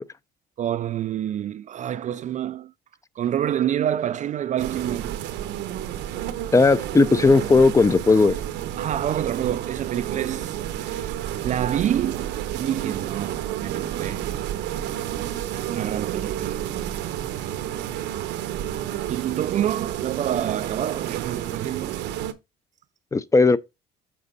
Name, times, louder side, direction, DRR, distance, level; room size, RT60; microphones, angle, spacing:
voice 1, 0.6-2.7 3.2-5.2 8.8-11.2 11.4-14.3 15.1-16.9 19.1-22.1, right 11 dB, 45° right, 0.4 m, -28 dB
sound 1, 4.6-22.3, right 11 dB, 80° right, 1.0 m, -30 dB
voice 2, 6.5-8.3 23.1-23.6, left 3 dB, 15° left, 0.5 m, -16 dB
7.3 x 5.2 x 4.0 m
cardioid pair, 125°, 18 cm